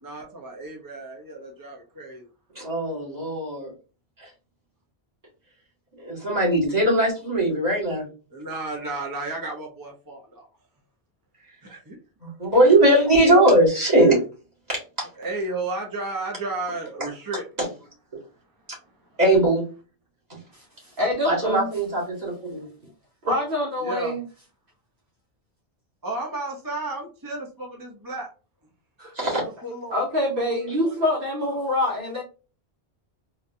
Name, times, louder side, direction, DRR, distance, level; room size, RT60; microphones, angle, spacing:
voice 1, 0.0-2.3 8.3-10.5 11.6-12.0 15.2-17.8 23.8-24.1 26.0-28.3 29.3-29.9, right 2 dB, 20° right, -1 dB, 0.7 m, -33 dB
voice 2, 2.6-3.7 6.0-8.0 12.2-14.2 14.7-14.8 19.2-19.6 21.2-22.6 29.2-29.4, right 1 dB, 40° right, -5 dB, 2.0 m, -20 dB
voice 3, 20.5-21.7 23.2-24.3 29.0-29.1 29.9-32.2, left 1 dB, 55° right, -3 dB, 1.2 m, -25 dB
4.0 x 2.4 x 2.7 m, 0.34 s
omnidirectional pair, 1.1 m